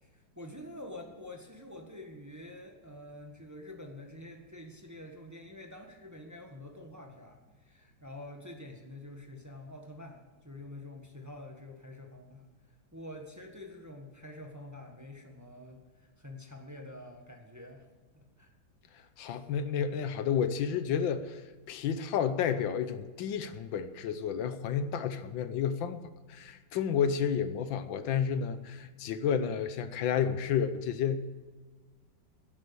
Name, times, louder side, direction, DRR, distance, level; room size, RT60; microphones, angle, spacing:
voice 1, 0.0-12.5 12.9-17.9 18.1-18.5 18.9-19.5, left 1 dB, 10° right, 2 dB, 1.3 m, -47 dB
voice 2, 19.2-21.4 21.7-26.0 26.3-31.2, left 7 dB, 85° left, 11 dB, 1.5 m, -31 dB
11.0 x 11.0 x 6.9 m, 1.4 s
omnidirectional pair, 2.1 m